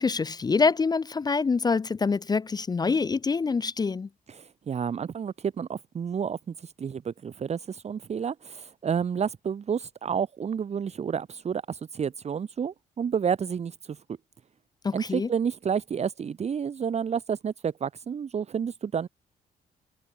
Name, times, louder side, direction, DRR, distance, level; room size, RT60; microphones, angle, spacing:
voice 1, 0.0-4.1 14.8-15.3, left 4 dB, 25° left, 0.4 m, -25 dB
voice 2, 4.3-14.0 14.9-19.1, right 7 dB, 45° right, 0.8 m, -30 dB
cardioid pair, 70°, 16 cm